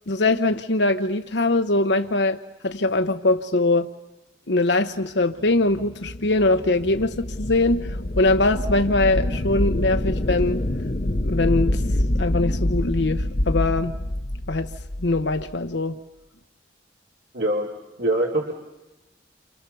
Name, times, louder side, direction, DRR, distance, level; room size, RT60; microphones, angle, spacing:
voice 1, 0.1-3.9 4.5-10.6 11.2-14.0 14.5-14.7 15.0-16.0, left 2 dB, 80° left, 7 dB, 1.1 m, -22 dB
sound 1, 5.4-15.5, left 1 dB, 40° left, 0.9 m, -26 dB
voice 2, 17.3-17.7 18.0-18.5, right 1 dB, 75° right, -1 dB, 3.3 m, -23 dB
30.0 x 28.0 x 7.0 m, 1.0 s
head